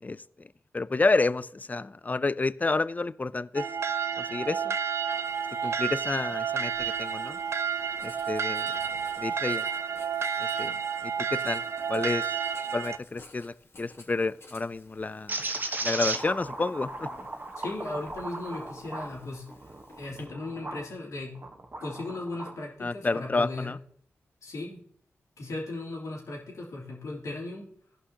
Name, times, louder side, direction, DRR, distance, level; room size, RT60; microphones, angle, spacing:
voice 1, 0.7-3.7 4.2-4.7 5.6-7.4 8.0-8.7 9.2-9.7 10.4-10.8 11.0-11.6 11.9-12.3 12.7-15.4 15.8-17.1 22.8-23.8, left 3 dB, 30° left, 17 dB, 0.4 m, -29 dB
sound 1, 3.6-13.0, right 7 dB, 55° right, 0.4 m, -30 dB
Writing, 5.2-20.2, left 2 dB, 50° left, 1.8 m, -55 dB
sound 2, 15.3-20.8 21.3-22.6, right 2 dB, 35° right, 1.2 m, -36 dB
voice 2, 17.5-19.5 19.9-21.3 21.8-23.7 24.4-24.8 25.4-27.7, left 2 dB, 80° left, -3 dB, 2.9 m, -37 dB
15.5 x 5.6 x 2.8 m, 0.64 s
cardioid pair, 50°, 5 cm